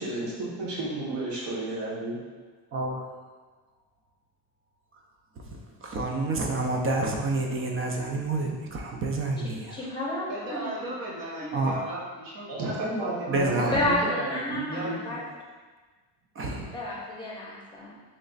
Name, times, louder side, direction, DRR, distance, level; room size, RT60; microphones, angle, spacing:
voice 1, 0.0-2.2 12.5-15.0, right 2 dB, 80° right, -5 dB, 1.3 m, -32 dB
voice 2, 2.7-3.1 5.4-9.8 11.5-11.8 13.3-13.8 16.4-16.7, right 2 dB, 35° right, 1 dB, 0.4 m, -29 dB
voice 3, 9.7-10.9 11.4-11.5 13.7-15.2 16.7-17.9, left 1 dB, 10° left, -5 dB, 0.7 m, -31 dB
voice 4, 10.3-12.5 12.8-13.6 14.7-15.3, right 1 dB, 50° right, -5 dB, 1.1 m, -37 dB
3.2 x 3.1 x 3.9 m, 1.4 s
cardioid pair, 170°, 41 cm